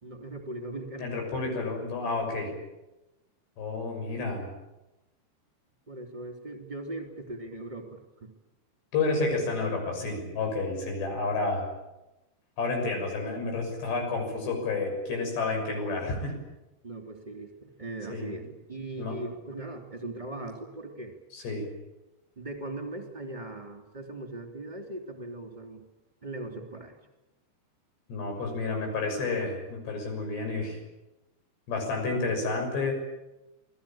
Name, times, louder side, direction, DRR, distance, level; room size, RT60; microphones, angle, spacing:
voice 1, 0.0-1.1 5.9-8.3 16.8-21.2 22.4-25.8 26.2-27.0, right 2 dB, 10° right, 3 dB, 2.7 m, -39 dB
voice 2, 1.0-2.6 3.6-4.5 8.9-11.7 12.6-16.4 18.1-18.4 19.0-19.2 21.3-21.7 28.1-30.8 31.7-32.9, left 3 dB, 75° left, 3 dB, 8.6 m, -30 dB
28.0 x 19.5 x 8.9 m, 0.99 s
omnidirectional pair, 4.9 m